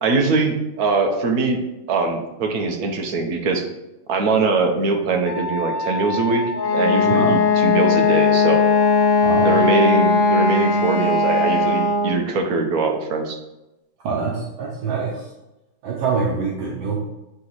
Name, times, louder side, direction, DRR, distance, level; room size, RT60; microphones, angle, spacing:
voice 1, 0.0-1.6 1.9-3.6 4.1-8.7 9.4-13.4, right 3 dB, 60° right, 4 dB, 1.2 m, -22 dB
Wind instrument woodwind instrument, 5.2-9.3, left 3 dB, 65° left, 1.9 m, -31 dB
Wind instrument woodwind instrument 2, 6.5-12.2, left 4 dB, 90° left, 1.6 m, -18 dB
voice 2, 7.1-7.4 9.2-9.6 14.0-15.3 15.8-17.0, right 5 dB, 80° right, -3 dB, 1.6 m, -25 dB
8.5 x 3.0 x 4.0 m, 0.97 s
omnidirectional pair, 2.0 m